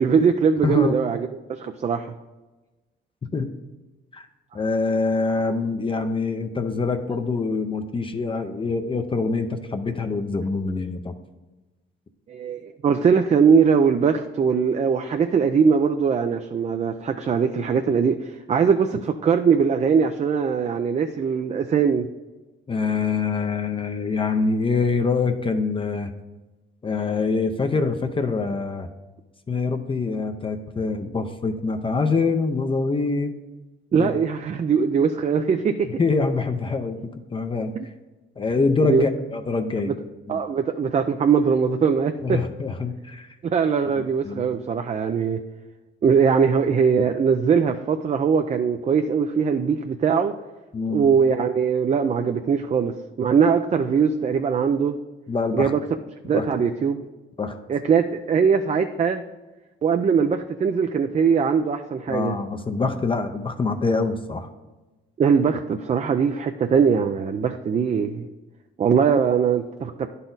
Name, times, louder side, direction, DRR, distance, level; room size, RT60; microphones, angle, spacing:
voice 1, 0.0-2.1 12.3-22.1 33.9-35.9 37.7-37.9 38.8-39.0 39.8-40.0 40.3-42.4 43.4-45.4 46.0-50.3 50.9-55.0 55.5-55.8 56.2-57.0 57.7-59.2 59.8-62.4 65.2-68.3 68.8-70.1, right 6 dB, 35° right, 7 dB, 0.4 m, -21 dB
voice 2, 0.6-1.0 3.3-3.5 4.1-4.3 4.5-11.1 22.7-26.1 26.8-28.9 29.5-33.3 34.0-34.1 36.0-37.7 38.4-39.9 40.3-40.4 42.2-43.3 44.2-44.5 50.7-51.1 55.3-55.7 56.3-56.5 57.4-57.6 62.1-64.5, left 4 dB, 25° left, 6 dB, 0.5 m, -25 dB
10.0 x 4.1 x 3.9 m, 1.2 s
cardioid pair, 90°, 20 cm